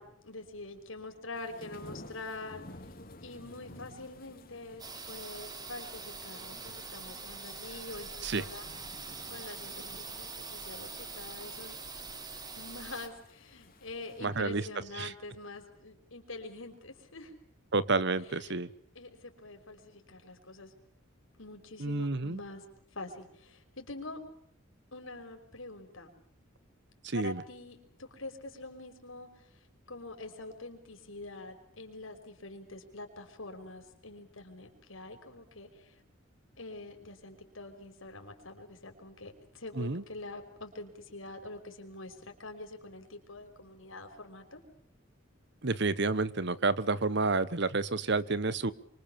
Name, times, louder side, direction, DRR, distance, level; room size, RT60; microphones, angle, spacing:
voice 1, 0.0-2.7 3.2-8.7 9.3-11.8 12.6-17.3 18.3-18.6 18.9-20.7 21.4-22.6 22.9-24.2 24.9-26.1 27.1-36.0 36.6-44.6, left 2 dB, 80° left, 5 dB, 5.5 m, -45 dB
sound 1, 1.3-14.4, left 1 dB, 45° left, 3.6 m, -53 dB
sound 2, 4.8-13.1, right 4 dB, 20° right, 2.4 m, -44 dB
voice 2, 14.2-14.6 15.0-15.1 17.7-18.7 21.8-22.4 27.0-27.4 39.8-40.0 45.6-48.7, right 3 dB, 55° right, 17 dB, 1.1 m, -29 dB
26.5 x 24.5 x 7.0 m, 0.67 s
head